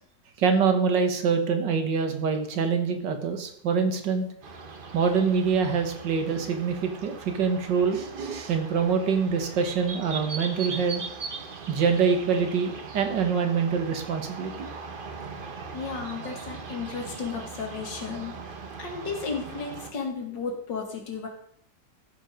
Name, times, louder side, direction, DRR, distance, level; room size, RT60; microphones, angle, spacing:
voice 1, 0.4-4.3 4.9-11.0 11.7-14.7, right 6 dB, 80° right, 6 dB, 2.0 m, -25 dB
sound 1, 4.4-19.9, right 5 dB, 40° right, 0.9 m, -40 dB
voice 2, 15.7-21.3, left 5 dB, 85° left, 2 dB, 2.6 m, -34 dB
14.5 x 5.3 x 5.1 m, 0.71 s
omnidirectional pair, 1.9 m